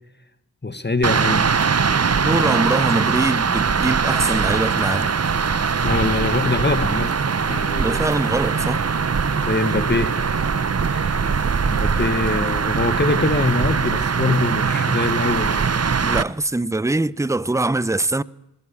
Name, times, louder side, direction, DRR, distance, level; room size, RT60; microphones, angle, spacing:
voice 1, 0.6-1.5 5.8-8.1 9.3-10.4 10.7-11.4 11.6-15.7, left 3 dB, 25° left, 1.8 m, -24 dB
sound 1, 1.0-16.2, right 5 dB, 40° right, 0.9 m, -21 dB
voice 2, 2.3-5.1 7.7-8.8 16.0-18.2, right 2 dB, 10° right, 0.7 m, -23 dB
21.5 x 18.5 x 7.2 m
cardioid pair, 50°, 39 cm